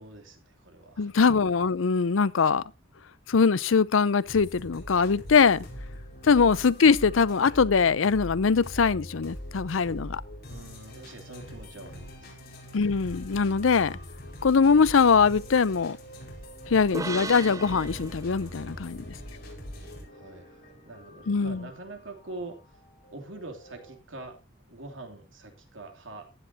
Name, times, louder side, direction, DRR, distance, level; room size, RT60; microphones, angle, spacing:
voice 1, 0.0-1.1 6.0-6.3 10.5-12.4 20.1-22.6 23.1-24.4 24.7-26.3, right 2 dB, 75° right, 2.8 m, -44 dB
voice 2, 1.0-2.6 3.3-5.6 6.3-10.2 12.7-14.0 14.4-16.0 16.7-19.0 21.3-21.6, left 5 dB, 85° left, 0.6 m, -22 dB
sound 1, 4.3-23.9, equal, 50° left, 4.7 m, -43 dB
sound 2, 16.9-20.4, right 3 dB, 15° right, 0.5 m, -39 dB
15.5 x 10.0 x 2.7 m
head